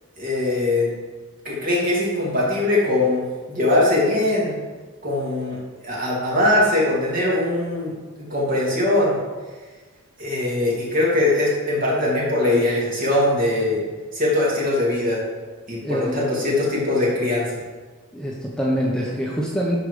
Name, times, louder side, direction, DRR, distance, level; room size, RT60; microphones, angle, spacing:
voice 1, 0.2-0.9 1.4-3.2 3.5-4.6 5.0-5.6 5.8-7.9 8.2-9.2 10.2-13.9 14.1-15.2 15.7-17.5, left 2 dB, 40° right, -5 dB, 3.0 m, -21 dB
voice 2, 15.8-16.4 18.1-19.8, equal, 5° left, -4 dB, 1.0 m, -25 dB
11.5 x 5.3 x 5.1 m, 1.4 s
head